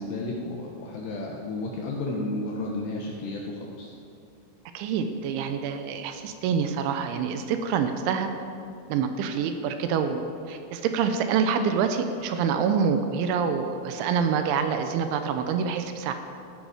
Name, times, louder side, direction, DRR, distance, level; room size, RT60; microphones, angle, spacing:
voice 1, 0.0-3.9, left 2 dB, 75° left, -1 dB, 2.7 m, -32 dB
voice 2, 4.7-8.3 8.9-16.1, right 6 dB, 80° right, 7 dB, 2.8 m, -26 dB
14.5 x 10.5 x 4.9 m, 2.7 s
omnidirectional pair, 6.0 m